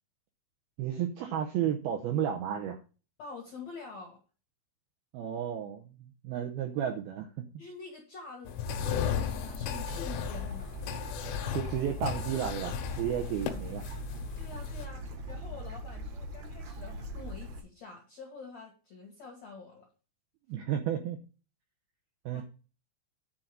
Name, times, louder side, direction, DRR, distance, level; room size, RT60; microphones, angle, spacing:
voice 1, 0.8-2.8 5.1-7.5 11.5-13.9 20.5-21.2 22.3-22.4, right 9 dB, 85° right, 4 dB, 2.2 m, -33 dB
voice 2, 3.2-4.2 7.6-8.6 8.8-10.8 14.3-19.9 22.3-22.4, left 4 dB, 65° left, 0 dB, 1.7 m, -47 dB
sound 1, 8.5-14.9, left 9 dB, 80° left, 3.3 m, -36 dB
Bird / Stream, 8.7-17.6, equal, 60° right, 1.8 m, -41 dB
10.5 x 4.0 x 7.6 m, 0.35 s
omnidirectional pair, 5.5 m